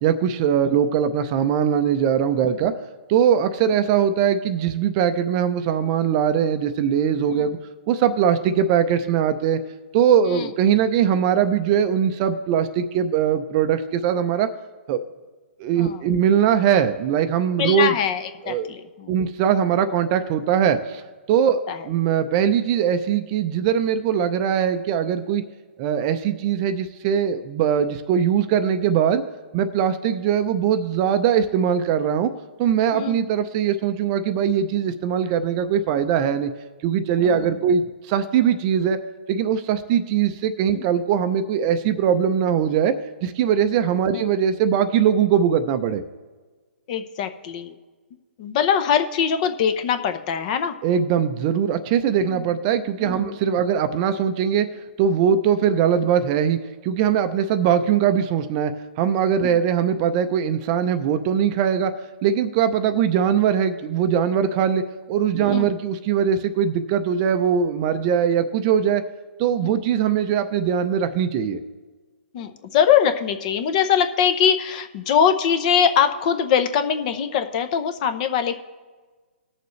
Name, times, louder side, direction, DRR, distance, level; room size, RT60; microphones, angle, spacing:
voice 1, 0.0-2.7 3.1-7.6 7.9-9.6 9.9-14.5 14.9-15.0 15.6-17.9 18.5-18.7 19.1-21.0 21.3-25.4 25.8-29.2 29.5-32.3 32.6-36.5 36.8-39.0 39.3-42.9 43.2-46.0 50.8-54.7 55.0-61.9 62.2-64.8 65.1-69.0 69.4-71.6, right 8 dB, 30° right, 10 dB, 0.5 m, -21 dB
voice 2, 17.6-19.1 21.7-21.9 32.9-33.2 37.2-37.6 40.7-40.9 44.1-44.2 46.9-47.8 48.4-50.8 52.2-52.5 53.0-53.6 59.4-59.6 65.3-65.7 69.6-69.8 72.3-78.6, left 8 dB, 35° left, 9 dB, 0.8 m, -23 dB
20.0 x 6.8 x 3.2 m, 1.4 s
hypercardioid pair, 155°, 7 cm